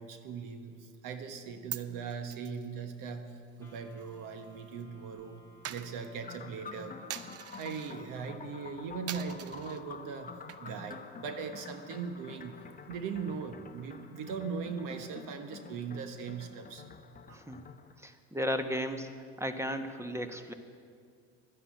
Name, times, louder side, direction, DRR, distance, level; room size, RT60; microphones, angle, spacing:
voice 1, 0.0-5.4 5.7-7.0 7.6-12.6 12.9-16.9 17.3-17.4, right 6 dB, 60° right, 7 dB, 1.2 m, -40 dB
Coin (dropping), 1.4-4.8 5.1-8.0 8.4-8.7 9.1-9.8 10.3-10.9 11.2-11.3 11.7-13.6, right 10 dB, 40° right, 0.7 m, -46 dB
Wind instrument woodwind instrument, 3.6-7.5, left 3 dB, 10° left, 2.9 m, -59 dB
sound 1, 6.2-17.9, left 5 dB, 25° left, 1.0 m, -48 dB
voice 2, 18.0-19.1 19.4-20.5, equal, 5° right, 8 dB, 1.2 m, -35 dB
12.0 x 9.7 x 8.3 m, 2.2 s
hypercardioid pair, 85°, 36 cm